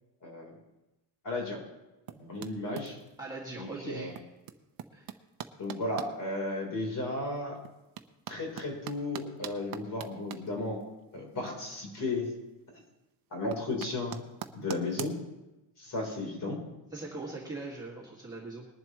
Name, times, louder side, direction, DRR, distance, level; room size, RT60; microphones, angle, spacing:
voice 1, 0.2-0.5 1.2-1.6 2.1-3.0 3.6-4.1 5.6-7.6 8.3-10.8 11.1-12.3 13.3-14.2 14.5-15.2 15.8-16.6, left 2 dB, 40° left, 1 dB, 3.9 m, -34 dB
sound 1, 2.1-3.2 4.1-6.1 6.6-6.7 7.4-12.0 12.2-12.8 13.1-15.2, right 10 dB, 45° right, 0.7 m, -43 dB
voice 2, 3.2-4.1 4.9-5.1 16.9-18.7, right 3 dB, 10° right, -6 dB, 2.0 m, -40 dB
20.5 x 11.0 x 3.1 m, 1.0 s
cardioid pair, 180°, 47 cm